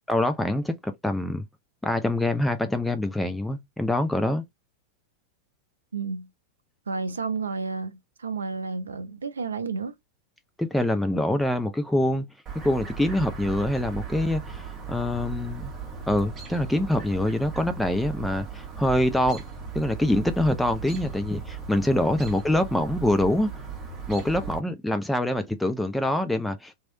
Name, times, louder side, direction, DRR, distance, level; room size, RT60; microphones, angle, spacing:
voice 1, 0.1-1.4 1.8-4.4 10.6-12.3 12.6-15.7 16.1-19.4 19.7-23.5 24.1-26.8, left 1 dB, 5° left, 0.4 m, -25 dB
voice 2, 5.9-6.3 6.9-9.9, right 4 dB, 70° right, 0.5 m, -31 dB
Chirp tweet, 12.5-24.6, right 6 dB, 20° right, 1.2 m, -37 dB
3.0 x 2.7 x 2.7 m
figure-of-eight pair, 90°, 0 cm